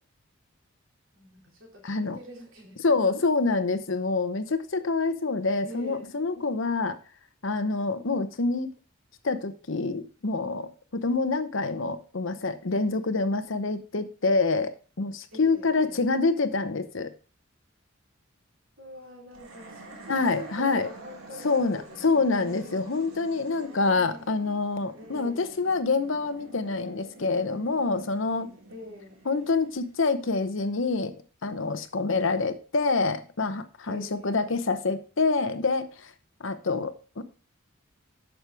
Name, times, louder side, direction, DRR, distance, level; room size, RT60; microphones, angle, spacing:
voice 1, 1.1-2.8 5.6-6.1 15.3-16.1 18.8-22.8 23.6-24.3 24.9-25.6 28.7-29.1 33.8-34.6, equal, 70° right, -1 dB, 3.4 m, -45 dB
voice 2, 1.8-2.2 2.8-7.0 7.4-8.7 9.2-14.7 15.0-17.1 20.1-20.9 21.4-28.5 29.3-31.2 31.4-36.1 36.4-37.2, left 3 dB, 65° left, 10 dB, 0.8 m, -26 dB
sound 1, 19.3-30.7, right 2 dB, 85° right, 2.0 m, -48 dB
9.0 x 6.5 x 3.4 m, 0.37 s
head